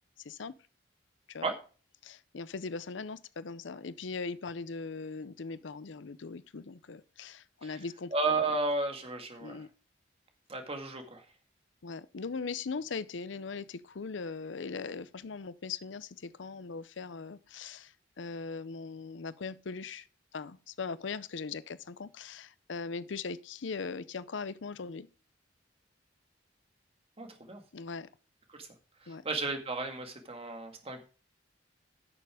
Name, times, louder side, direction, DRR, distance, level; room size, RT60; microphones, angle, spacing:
voice 1, 2.0-8.1 9.4-9.7 11.8-20.1 20.3-25.1 27.7-28.1 29.1-29.2, left 4 dB, 70° left, 0.6 m, -40 dB
voice 2, 8.1-9.6 10.5-11.2 27.2-27.6 28.5-28.7 29.0-31.0, right 3 dB, 30° right, 2.0 m, -33 dB
11.0 x 6.8 x 4.9 m
head